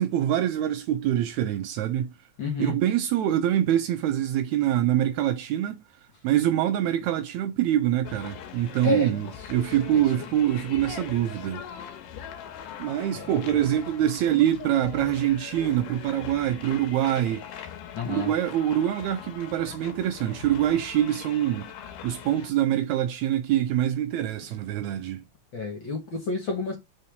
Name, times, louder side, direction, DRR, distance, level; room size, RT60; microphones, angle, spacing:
voice 1, 0.0-2.1 2.6-5.8 6.2-11.6 12.8-17.5 18.1-21.7 22.0-25.2, right 11 dB, 80° right, 1.8 m, -25 dB
voice 2, 2.4-2.8 8.8-9.3 9.9-10.0 13.1-13.3 17.9-18.3 25.5-26.8, left 3 dB, 50° left, 1.7 m, -29 dB
sound 1, 8.0-22.5, left 9 dB, 85° left, 2.6 m, -41 dB
5.6 x 3.7 x 5.1 m
omnidirectional pair, 3.7 m